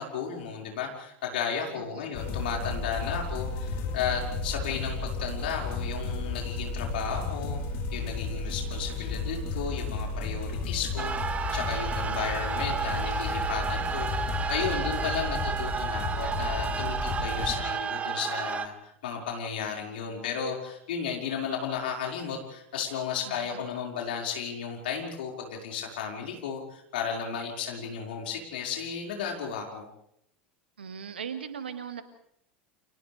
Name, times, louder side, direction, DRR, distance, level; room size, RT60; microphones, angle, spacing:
voice 1, 0.0-7.6 7.9-18.7 19.0-29.9, left 7 dB, 65° left, 0 dB, 5.3 m, -34 dB
voice 2, 1.8-2.1 12.1-12.4 23.3-23.6 30.8-32.0, right 7 dB, 75° right, 9 dB, 2.0 m, -39 dB
sound 1, 2.1-17.6, left 3 dB, 50° left, 4.7 m, -33 dB
sound 2, 11.0-18.7, right 6 dB, 25° right, 1.4 m, -32 dB
30.0 x 28.5 x 3.5 m, 0.74 s
figure-of-eight pair, 80°, 6 cm